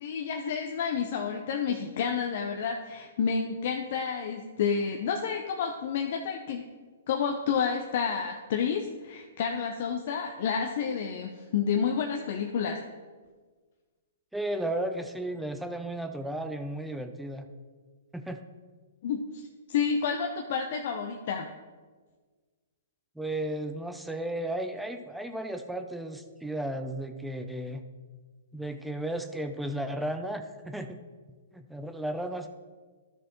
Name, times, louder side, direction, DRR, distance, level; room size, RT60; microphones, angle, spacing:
voice 1, 0.0-6.7 7.1-12.8 19.0-21.5, left 6 dB, 55° left, 3 dB, 0.6 m, -30 dB
voice 2, 14.3-17.5 18.1-18.4 23.2-27.8 28.5-31.0 31.5-32.5, right 1 dB, 5° right, 6 dB, 0.5 m, -34 dB
13.0 x 6.2 x 3.1 m, 1.4 s
figure-of-eight pair, 120°, 0 cm